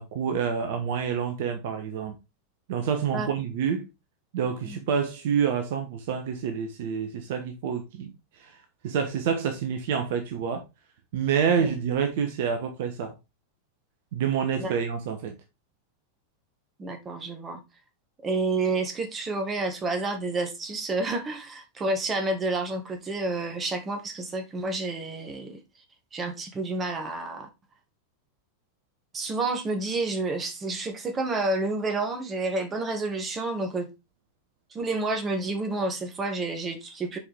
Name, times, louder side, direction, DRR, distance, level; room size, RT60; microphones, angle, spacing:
voice 1, 0.0-2.2 2.7-3.9 4.3-8.1 8.4-8.6 8.8-10.6 11.1-13.1 14.1-15.4, right 7 dB, 50° right, 1.0 m, -27 dB
voice 2, 16.8-17.6 18.2-25.6 26.1-27.5 29.1-33.9 34.7-37.2, right 2 dB, 20° right, 1.6 m, -29 dB
6.8 x 4.8 x 3.5 m
figure-of-eight pair, 90°, 0 cm